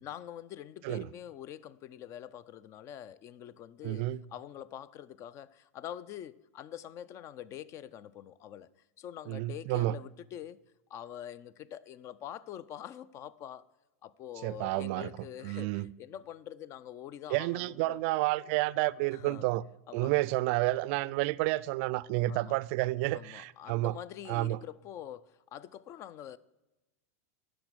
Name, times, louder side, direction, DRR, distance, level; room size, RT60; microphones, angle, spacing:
voice 1, 0.0-8.7 9.0-10.6 10.9-13.7 14.0-18.0 19.1-19.5 19.9-20.1 22.3-22.6 23.1-26.4, left 10 dB, 40° left, 0.5 m, -45 dB
voice 2, 3.8-4.2 9.3-9.9 14.4-15.1 15.4-15.9 17.3-19.6 19.9-24.0 24.3-24.6, right 18 dB, 55° right, 0.4 m, -30 dB
10.5 x 6.2 x 6.7 m
hypercardioid pair, 115°, 8 cm